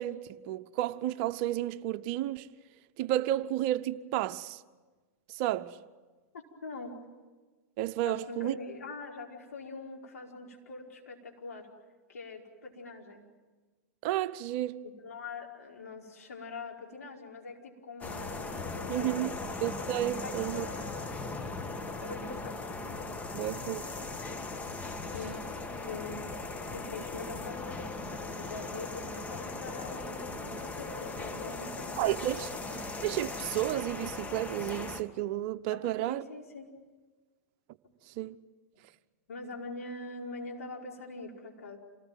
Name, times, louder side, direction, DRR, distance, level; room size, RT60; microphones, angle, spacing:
voice 1, 0.0-2.5 3.0-4.6 5.3-5.8 7.8-8.5 14.0-14.8 18.9-19.3 19.6-20.7 23.3-23.9 32.0-32.5 33.0-36.2 38.2-38.4, right 14 dB, 50° right, 0.9 m, -32 dB
voice 2, 6.6-7.0 8.0-11.7 12.1-13.2 14.8-19.6 20.1-21.1 22.0-22.6 25.1-25.4 25.8-26.4 26.7-32.8 35.7-36.7 39.3-41.8, left 3 dB, 75° left, 4.9 m, -43 dB
sound 1, 18.0-35.0, left 3 dB, 15° left, 1.7 m, -38 dB
27.5 x 19.0 x 9.2 m
hypercardioid pair, 105°, 8 cm